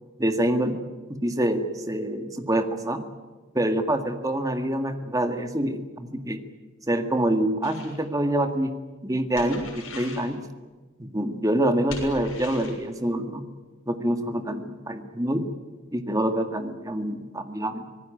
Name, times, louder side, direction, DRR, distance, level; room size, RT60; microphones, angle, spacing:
voice 1, 0.2-0.8 1.1-3.1 3.5-6.4 6.9-8.7 9.0-10.4 11.0-13.5 13.9-15.5 15.9-17.9, right 1 dB, 15° right, 7 dB, 1.8 m, -26 dB
sound 1, 7.6-8.0 9.3-10.3 11.9-12.8, left 4 dB, 80° left, 7.0 m, -40 dB
26.0 x 19.0 x 9.1 m, 1.3 s
head